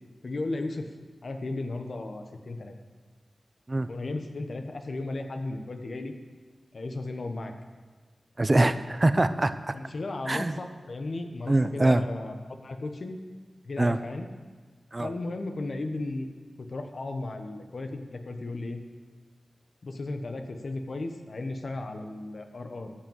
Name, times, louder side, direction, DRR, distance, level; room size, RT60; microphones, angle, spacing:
voice 1, 0.2-0.9 1.2-2.7 3.9-6.1 6.7-7.5 9.7-12.3 12.6-13.2 13.6-14.3 15.0-16.3 16.6-18.8 19.8-22.9, left 2 dB, 65° left, 5 dB, 1.1 m, -35 dB
voice 2, 8.4-9.7 10.3-10.6 11.5-12.0 13.8-14.0 14.9-15.1, right 2 dB, 35° right, 11 dB, 0.6 m, -23 dB
13.0 x 6.2 x 7.3 m, 1.4 s
cardioid pair, 55°, 0 cm